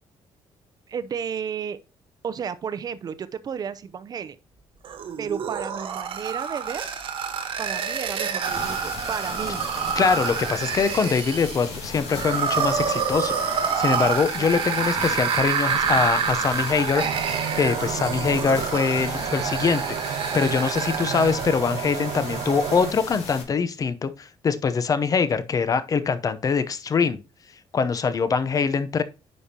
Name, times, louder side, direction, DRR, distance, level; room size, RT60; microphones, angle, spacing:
voice 1, 0.9-1.8 2.2-4.4 5.2-6.9 7.6-9.6 14.4-14.5, right 7 dB, 40° right, 0.6 m, -32 dB
sound 1, 4.8-21.5, right 7 dB, 60° right, 1.3 m, -28 dB
sound 2, 8.4-23.4, left 4 dB, 85° left, 2.0 m, -37 dB
voice 2, 10.0-13.4 13.8-17.0 17.5-27.2 27.7-29.0, left 5 dB, 35° left, 0.7 m, -23 dB
sound 3, 17.0-22.9, right 10 dB, 80° right, 0.6 m, -31 dB
9.3 x 5.3 x 2.8 m
cardioid pair, 115°, 10 cm